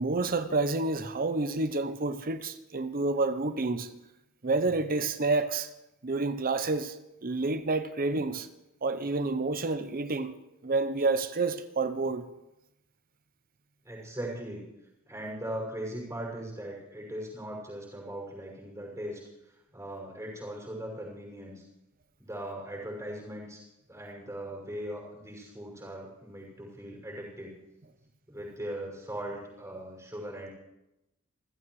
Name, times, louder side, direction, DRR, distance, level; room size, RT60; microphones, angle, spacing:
voice 1, 0.0-3.9 4.4-5.7 6.0-7.0 7.2-8.5 8.8-10.3 10.6-12.3, right 3 dB, 40° right, 0.8 m, -29 dB
voice 2, 13.8-14.6 15.1-21.6 22.2-23.6 23.9-27.5 28.3-30.5, right 1 dB, 15° right, 6.2 m, -39 dB
29.0 x 15.0 x 3.2 m
head